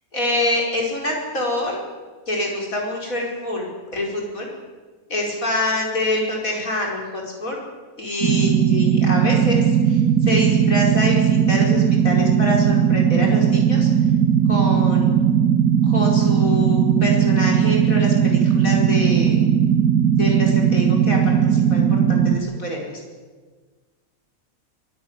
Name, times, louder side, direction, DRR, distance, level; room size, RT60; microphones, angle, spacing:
voice 1, 0.1-1.8 2.3-4.5 5.1-7.6 8.0-13.9 14.5-15.1 15.8-19.4 20.1-22.8, left 1 dB, 70° left, -1 dB, 5.6 m, -26 dB
sound 1, 8.2-22.4, right 8 dB, 80° right, 2.0 m, -17 dB
23.5 x 12.5 x 9.7 m, 1.4 s
omnidirectional pair, 1.5 m